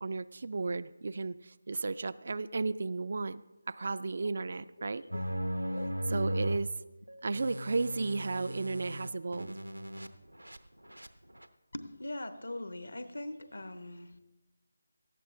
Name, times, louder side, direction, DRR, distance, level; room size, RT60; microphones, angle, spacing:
voice 1, 0.0-3.4 3.7-5.0 6.1-6.7 7.2-9.6, right 3 dB, 45° right, 15 dB, 0.3 m, -34 dB
sound 1, 5.1-6.6 7.1-10.1 10.3-10.6 10.8-11.1 11.4-11.5, equal, 85° right, 0.8 m, -37 dB
voice 2, 11.7-14.2, left 1 dB, 65° left, 10 dB, 1.0 m, -41 dB
18.0 x 13.5 x 2.6 m, 1.1 s
figure-of-eight pair, 160°, 0 cm